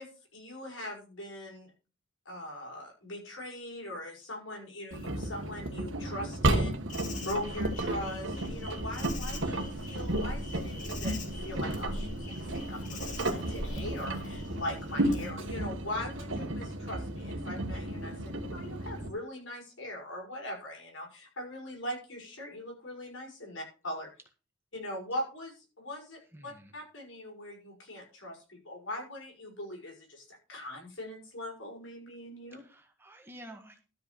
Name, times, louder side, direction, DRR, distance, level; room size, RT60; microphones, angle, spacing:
voice 1, 0.0-1.7 2.3-6.8 7.2-24.1 24.7-32.6, left 1 dB, 85° left, 0 dB, 5.8 m, -41 dB
Engine, 4.9-19.1, right 1 dB, 85° right, 1.6 m, -33 dB
Insect, 6.9-15.3, left 1 dB, 40° left, 1.8 m, -42 dB
voice 2, 26.3-26.7 32.5-33.8, equal, 10° right, 3 dB, 1.7 m, -50 dB
12.5 x 5.2 x 6.7 m, 0.33 s
head